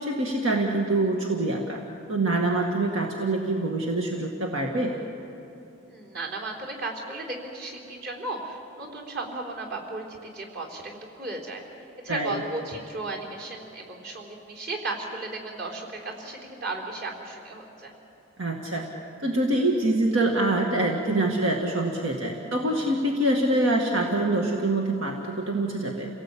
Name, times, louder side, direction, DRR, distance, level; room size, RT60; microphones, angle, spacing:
voice 1, 0.0-1.8 2.1-4.9 12.1-12.4 18.4-18.9 19.2-26.1, right 2 dB, 75° right, 1 dB, 1.9 m, -25 dB
voice 2, 5.9-11.6 12.0-17.9, right 2 dB, 50° right, 0 dB, 4.1 m, -35 dB
28.5 x 18.0 x 8.6 m, 2.8 s
head